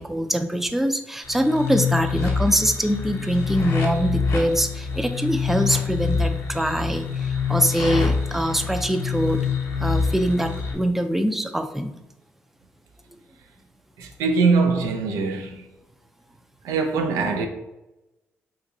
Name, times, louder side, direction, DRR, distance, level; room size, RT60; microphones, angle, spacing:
voice 1, 0.0-9.4 9.8-11.9, right 1 dB, 5° right, 0.4 m, -23 dB
sound 1, 1.2-10.7, left 5 dB, 70° left, 0.8 m, -26 dB
voice 2, 14.0-15.6 16.6-17.5, right 4 dB, 85° right, 0.4 m, -22 dB
4.0 x 2.5 x 2.6 m
supercardioid pair, 55°, 5 cm